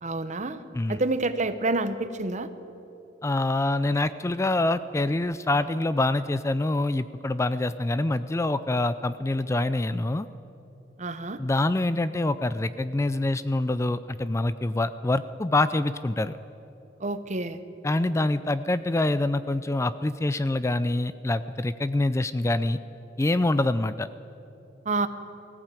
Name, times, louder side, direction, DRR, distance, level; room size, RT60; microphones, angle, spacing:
voice 1, 0.0-0.6 0.9-2.5 11.0-11.4 17.0-17.6 24.8-25.1, right 2 dB, 40° right, 11 dB, 1.0 m, -28 dB
voice 2, 3.2-10.3 11.4-16.4 17.8-22.8 23.2-24.1, left 2 dB, 15° left, 14 dB, 0.4 m, -25 dB
19.0 x 15.0 x 9.0 m, 2.9 s
head